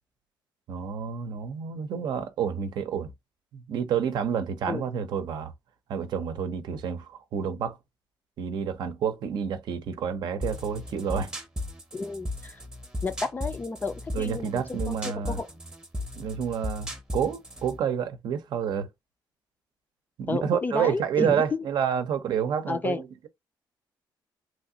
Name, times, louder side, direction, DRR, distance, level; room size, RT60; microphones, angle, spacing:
voice 1, 0.7-3.1 3.5-5.5 5.9-7.8 8.4-11.3 14.1-15.4 16.2-18.9 20.2-23.3, right 7 dB, 65° right, 0.7 m, -29 dB
sound 1, 10.4-17.8, left 1 dB, 10° right, 0.7 m, -36 dB
voice 2, 11.9-12.6 13.0-15.5 20.3-21.7 22.7-23.0, left 3 dB, 25° left, 0.4 m, -32 dB
3.1 x 2.6 x 2.7 m
cardioid pair, 145°, 8 cm